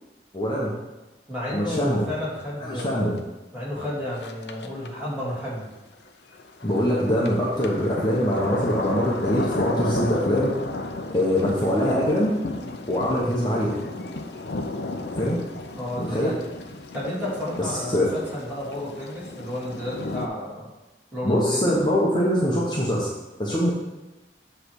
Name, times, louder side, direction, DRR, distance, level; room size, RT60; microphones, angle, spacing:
voice 1, 0.3-0.7 1.5-2.0 2.6-3.1 6.6-10.5 11.1-12.4 12.9-13.8 15.2-15.4 16.0-16.4 17.6-18.2 21.2-23.1 23.4-23.7, equal, 25° left, -5 dB, 1.0 m, -23 dB
voice 2, 1.3-3.2 3.5-5.7 15.8-16.5 16.9-20.7 21.1-21.7, left 1 dB, 10° right, -8 dB, 2.3 m, -31 dB
sound 1, 2.8-2.9 3.2-3.3 4.1-4.9 6.1-20.3, left 2 dB, 70° left, 0.6 m, -33 dB
7.8 x 3.3 x 6.3 m, 1.1 s
head